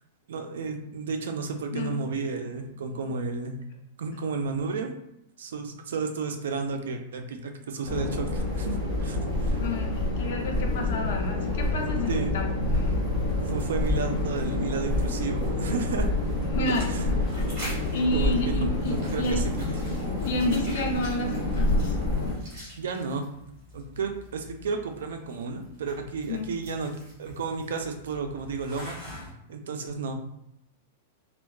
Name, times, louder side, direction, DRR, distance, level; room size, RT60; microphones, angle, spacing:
voice 1, 0.3-3.6 4.0-4.9 5.4-9.6 12.1-12.3 13.3-16.1 16.9-17.0 18.1-19.5 20.1-20.2 22.8-23.2 23.7-26.9 27.2-29.0 29.5-30.1, right 4 dB, 85° right, 5 dB, 0.4 m, -32 dB
voice 2, 1.7-2.1 2.9-3.1 9.6-13.0 16.5-16.9 17.9-19.4 20.3-22.0 26.3-26.5, left 1 dB, 60° left, 2 dB, 0.6 m, -30 dB
sound 1, 7.8-22.3, left 2 dB, 5° right, 1.4 m, -27 dB
sound 2, 12.4-29.3, left 1 dB, 35° right, 1.4 m, -46 dB
3.5 x 2.2 x 2.3 m, 0.79 s
supercardioid pair, 170°, 0 cm